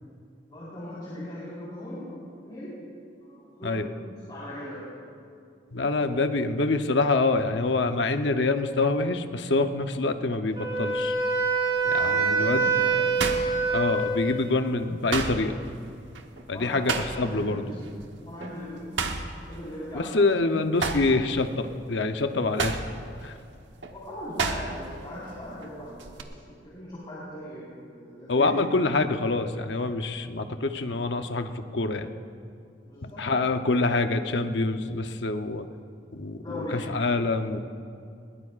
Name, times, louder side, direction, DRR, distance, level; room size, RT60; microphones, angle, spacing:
voice 1, 0.5-2.8 3.2-4.8 12.0-12.9 16.5-17.8 18.2-19.1 19.4-20.4 23.9-28.5 32.8-33.2 36.4-36.9, left 1 dB, 25° left, -9 dB, 4.3 m, -39 dB
voice 2, 5.7-11.2 11.8-12.7 13.7-15.5 16.5-17.6 19.9-22.8 23.2-23.3 28.3-32.1 33.0-35.7 36.1-36.4 36.7-37.6, left 3 dB, 70° left, 7 dB, 0.8 m, -26 dB
Wind instrument woodwind instrument, 10.5-14.6, right 4 dB, 30° right, 3.7 m, -25 dB
sound 1, 10.9-11.3 11.8-14.3 14.6-17.5 17.8-18.1 18.4-20.3 20.7-25.0 25.3-26.2, right 4 dB, 85° right, 1.1 m, -32 dB
21.5 x 20.5 x 2.5 m, 2.3 s
head